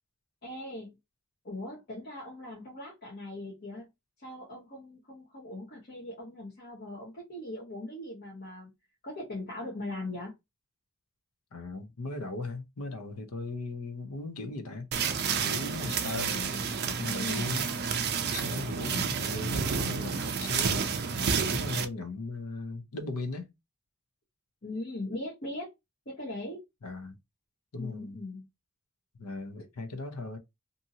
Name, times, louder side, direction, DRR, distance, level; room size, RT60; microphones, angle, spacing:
voice 1, 0.4-0.9 1.4-3.9 4.2-8.7 9.0-10.3 17.1-17.5 24.6-25.7 26.1-26.6 27.8-28.5, left 1 dB, 45° left, 1.0 m, -40 dB
voice 2, 11.5-14.9 15.4-17.7 17.9-20.9 21.2-23.5 26.8-27.2 27.7-28.2 29.2-30.4, left 3 dB, 85° left, 0.7 m, -38 dB
sound 1, 14.9-21.9, right 6 dB, 45° right, 0.4 m, -30 dB
2.7 x 2.6 x 2.7 m
head